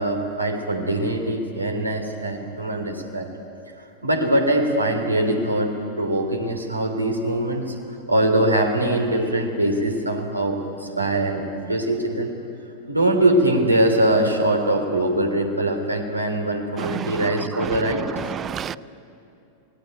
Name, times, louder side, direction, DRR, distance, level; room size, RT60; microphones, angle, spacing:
voice 1, 0.0-3.3 4.0-7.7 8.1-12.3 12.9-18.0, right 1 dB, 85° right, 3.2 m, -22 dB
voice 2, 16.8-17.3 17.6-17.7 18.3-18.8, right 8 dB, 25° right, 0.5 m, -30 dB
25.5 x 19.0 x 9.2 m
figure-of-eight pair, 90°, 0 cm